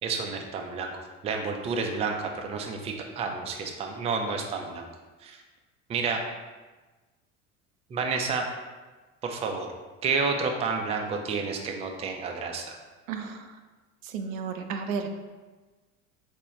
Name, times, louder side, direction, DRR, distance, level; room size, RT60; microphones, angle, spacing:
voice 1, 0.0-0.9 1.2-4.9 5.2-5.4 5.9-6.2 7.9-8.4 9.2-9.7 10.0-12.8, right 4 dB, 15° right, 3 dB, 0.4 m, -30 dB
voice 2, 13.1-13.4 14.0-15.1, right 6 dB, 75° right, 6 dB, 0.5 m, -32 dB
4.3 x 2.2 x 3.1 m, 1.3 s
hypercardioid pair, 75°, 40 cm